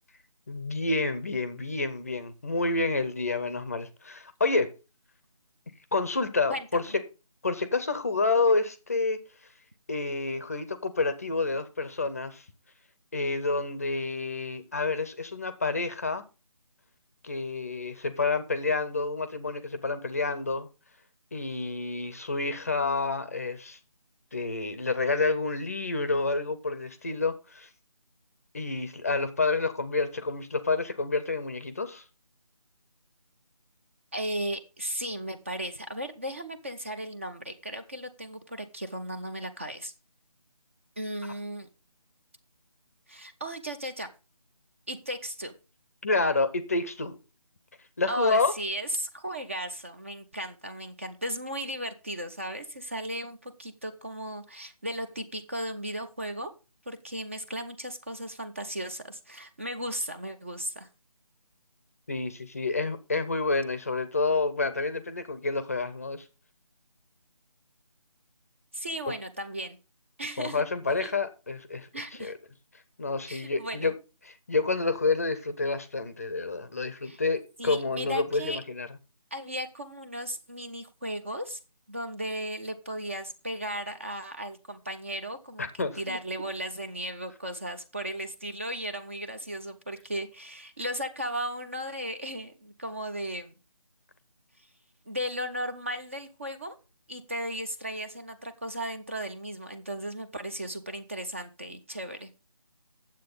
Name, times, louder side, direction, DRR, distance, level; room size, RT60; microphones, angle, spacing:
voice 1, 0.5-4.7 5.9-7.0 7.4-9.2 9.9-12.4 13.1-16.2 17.2-20.7 21.3-23.8 24.3-27.7 28.5-32.0 46.0-47.2 48.0-48.5 62.1-66.2 70.4-71.9 72.2-72.4 73.0-74.0 74.2-78.9 85.6-86.2, left 3 dB, 25° left, 0.7 m, -29 dB
voice 2, 6.5-7.0 34.1-39.9 41.0-41.7 43.1-44.1 44.9-45.5 48.1-56.5 56.9-60.9 68.7-69.8 70.2-70.6 71.0-71.1 71.9-72.3 73.3-73.9 77.0-77.2 77.6-78.6 79.3-81.6 81.9-93.5 94.6-94.7 95.1-96.8 97.1-102.3, right 1 dB, 20° right, 0.6 m, -36 dB
9.3 x 7.6 x 5.2 m
figure-of-eight pair, 165°, 19 cm